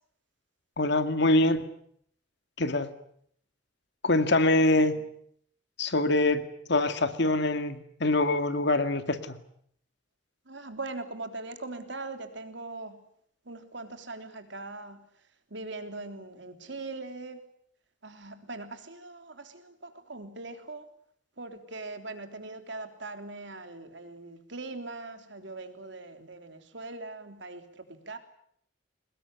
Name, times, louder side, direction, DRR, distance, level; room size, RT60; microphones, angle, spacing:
voice 1, 0.8-1.7 2.6-2.9 4.0-5.0 5.8-6.4 6.7-9.4, left 2 dB, 65° left, 10 dB, 2.2 m, -24 dB
voice 2, 10.5-13.0 13.4-15.0 15.5-17.4 18.0-20.9 21.4-28.2, right 3 dB, 70° right, 7 dB, 3.4 m, -41 dB
23.0 x 20.5 x 9.8 m, 0.68 s
head